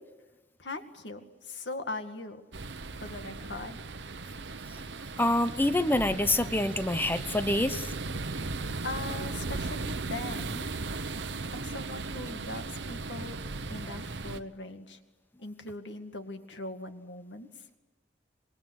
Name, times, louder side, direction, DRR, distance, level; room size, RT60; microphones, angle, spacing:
voice 1, 0.6-2.4 2.9-3.8 8.8-10.7 11.5-13.4 13.7-15.0 15.4-17.5, left 2 dB, 90° left, 7 dB, 2.2 m, -40 dB
sound 1, 2.5-14.4, right 3 dB, 85° right, 1.0 m, -37 dB
voice 2, 5.2-7.9, left 1 dB, 10° left, 11 dB, 0.9 m, -26 dB
26.0 x 21.5 x 9.8 m, 1.2 s
head